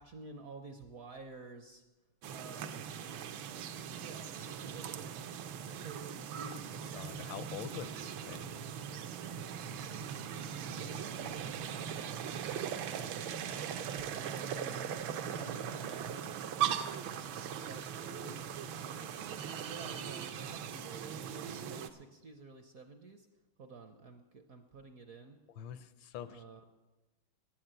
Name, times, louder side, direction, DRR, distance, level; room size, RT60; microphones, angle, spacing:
voice 1, 0.0-1.8 2.3-2.9 4.0-5.2 5.7-6.8 9.8-12.8 13.4-16.4 17.6-23.3 23.6-25.4 26.3-26.6, right 4 dB, 60° right, 6 dB, 0.9 m, -51 dB
sound 1, 2.2-21.9, right 8 dB, 80° right, 1.5 m, -40 dB
voice 2, 6.9-8.6 25.5-26.4, left 10 dB, 75° left, 13 dB, 1.3 m, -45 dB
9.5 x 9.3 x 8.9 m, 1.1 s
omnidirectional pair, 2.3 m